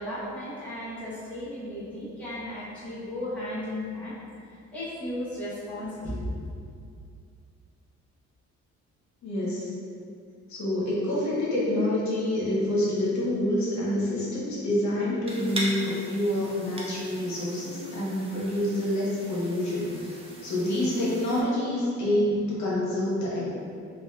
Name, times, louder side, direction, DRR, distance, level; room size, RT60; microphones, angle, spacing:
voice 1, 0.0-4.2 4.7-6.4, left 1 dB, 5° left, -11 dB, 0.8 m, -35 dB
voice 2, 9.2-9.7 10.5-20.2 20.4-23.4, left 1 dB, 65° left, -7 dB, 0.8 m, -27 dB
sound 1, 15.3-21.4, right 1 dB, 20° right, 0.4 m, -40 dB
2.6 x 2.3 x 2.2 m, 2.3 s
cardioid pair, 90°, 30 cm